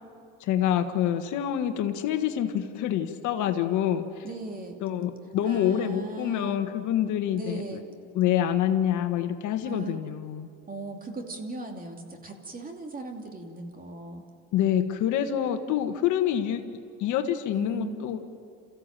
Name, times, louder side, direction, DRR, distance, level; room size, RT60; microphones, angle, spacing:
voice 1, 0.4-4.2 4.8-7.6 8.1-10.5 14.5-16.6 17.0-18.2, left 10 dB, 60° left, 7 dB, 1.5 m, -26 dB
voice 2, 4.2-4.8 5.4-6.7 7.3-7.9 9.6-10.0 10.7-14.2 17.5-18.2, right 3 dB, 25° right, 3 dB, 2.6 m, -38 dB
28.5 x 15.0 x 7.6 m, 2.4 s
supercardioid pair, 105°, 33 cm